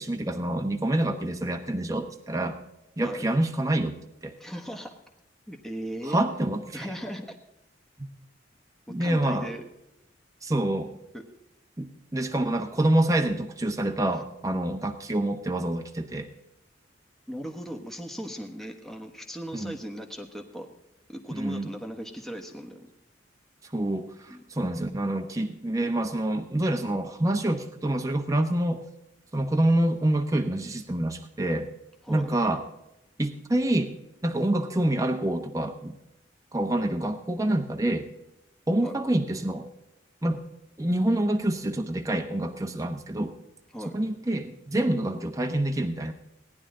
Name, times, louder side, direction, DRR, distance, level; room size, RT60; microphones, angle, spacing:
voice 1, 0.0-2.6 3.0-4.3 6.1-6.9 8.9-9.5 10.4-10.9 11.8-16.3 19.5-19.7 21.3-21.7 23.7-28.8 29.3-31.7 32.1-32.6 33.2-33.9 34.2-35.9 36.5-38.1 38.7-39.7 40.2-40.4 40.8-43.3 43.9-46.1, right 1 dB, 20° right, 4 dB, 0.9 m, -27 dB
voice 2, 4.4-4.9 5.5-6.2 6.7-7.4 8.9-9.7 11.1-11.2 17.3-20.7 21.1-22.9 24.3-24.4 32.0-32.3 38.8-39.0 43.7-44.0, equal, ahead, 3 dB, 1.2 m, -37 dB
17.5 x 10.5 x 3.8 m, 0.87 s
head